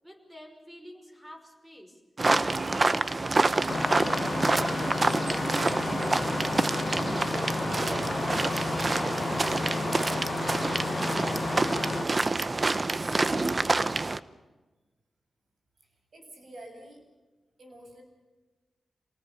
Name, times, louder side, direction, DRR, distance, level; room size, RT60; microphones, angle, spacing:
voice 1, 0.0-2.0 2.3-8.3, equal, 10° right, 3 dB, 5.7 m, -47 dB
sound 1, 2.2-14.2, right 3 dB, 35° right, 0.9 m, -27 dB
Engine starting, 3.7-12.0, left 4 dB, 55° left, 0.8 m, -32 dB
voice 2, 12.6-13.2 15.8-17.1 17.6-18.0, right 1 dB, 65° right, 3 dB, 7.7 m, -48 dB
27.5 x 19.0 x 7.0 m, 1.2 s
wide cardioid pair, 90°, 0 cm